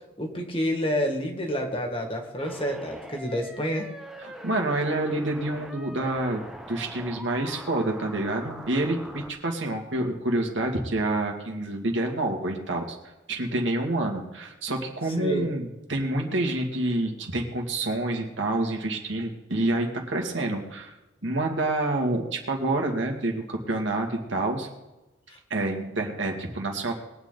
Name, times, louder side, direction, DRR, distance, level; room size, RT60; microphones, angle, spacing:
voice 1, 0.2-3.9 15.2-15.5 25.3-25.4, equal, 30° left, 3 dB, 2.0 m, -29 dB
sound 1, 2.4-9.3, equal, 5° right, 0.9 m, -42 dB
voice 2, 4.2-6.4 6.7-13.0 13.3-20.9 21.2-24.7 25.5-26.9, right 2 dB, 75° right, 1 dB, 2.2 m, -28 dB
21.5 x 9.0 x 4.0 m, 1.0 s
head